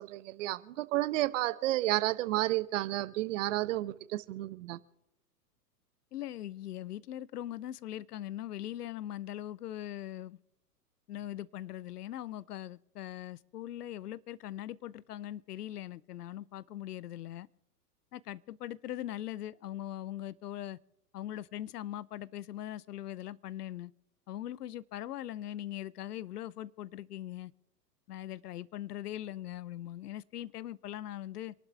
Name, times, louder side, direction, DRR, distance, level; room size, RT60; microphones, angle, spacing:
voice 1, 0.0-4.8, right 16 dB, 50° right, 1.0 m, -31 dB
voice 2, 6.1-10.4 11.1-17.5 18.1-20.8 21.1-23.9 24.3-27.5 28.1-31.5, left 12 dB, 70° left, 0.8 m, -41 dB
27.5 x 11.5 x 3.5 m
hypercardioid pair, 115°, 48 cm